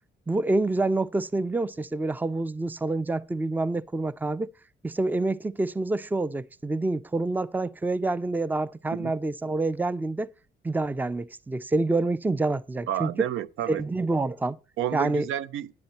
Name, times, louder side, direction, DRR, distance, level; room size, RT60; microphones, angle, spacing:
voice 1, 0.3-4.5 4.8-10.3 10.6-13.1 13.7-14.6 14.9-15.3, right 2 dB, 10° right, 0.4 m, -27 dB
voice 2, 12.9-13.8 14.8-15.7, right 11 dB, 85° right, 0.6 m, -30 dB
10.5 x 9.1 x 4.3 m
cardioid pair, 90°, 20 cm